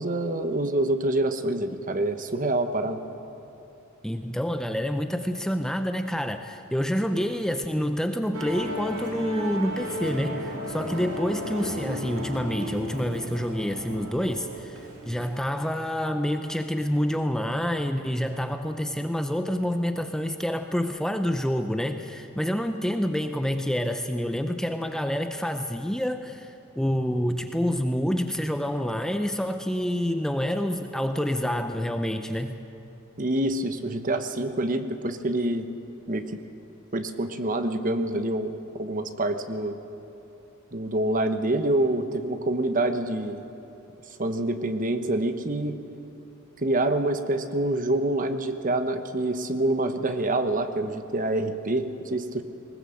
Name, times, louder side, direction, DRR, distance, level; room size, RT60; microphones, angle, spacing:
voice 1, 0.0-3.0 33.2-35.7 36.1-36.2 36.9-39.8 40.7-43.4 44.2-45.8 46.6-52.4, right 1 dB, 40° right, 8 dB, 1.1 m, -26 dB
voice 2, 4.0-32.6, equal, 5° left, 6 dB, 0.6 m, -28 dB
Musical instrument, 8.3-15.3, equal, 85° right, 3.8 m, -35 dB
20.0 x 19.5 x 7.8 m, 2.9 s
head